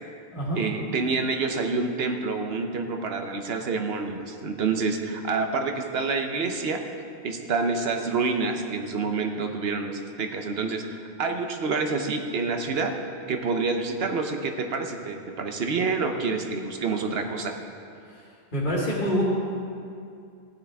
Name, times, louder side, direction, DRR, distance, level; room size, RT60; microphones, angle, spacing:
voice 1, 0.6-6.8 7.2-12.9 13.3-17.5, right 4 dB, 60° right, 5 dB, 1.1 m, -27 dB
voice 2, 18.5-19.2, equal, 45° left, -6 dB, 2.1 m, -26 dB
14.5 x 9.6 x 3.5 m, 2.5 s
omnidirectional pair, 1.2 m